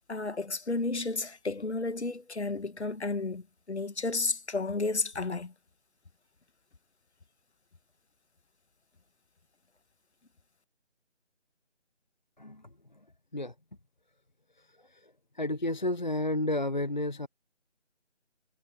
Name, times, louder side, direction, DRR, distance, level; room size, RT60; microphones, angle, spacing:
voice 1, 0.1-5.5, left 3 dB, 65° left, 1.6 m, -32 dB
voice 2, 15.4-17.3, left 1 dB, 40° left, 0.5 m, -30 dB
figure-of-eight pair, 165°, 36 cm